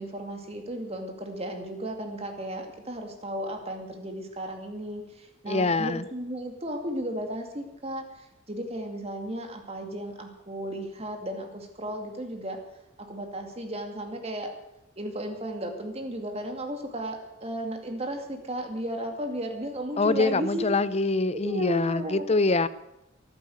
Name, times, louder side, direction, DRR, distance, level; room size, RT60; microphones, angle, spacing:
voice 1, 0.0-12.6 13.0-14.5 15.0-20.7 21.3-22.2, right 1 dB, 30° right, 4 dB, 2.4 m, -34 dB
voice 2, 5.5-6.0 20.0-22.7, left 3 dB, 30° left, 16 dB, 0.6 m, -24 dB
14.5 x 11.5 x 7.9 m, 0.87 s
head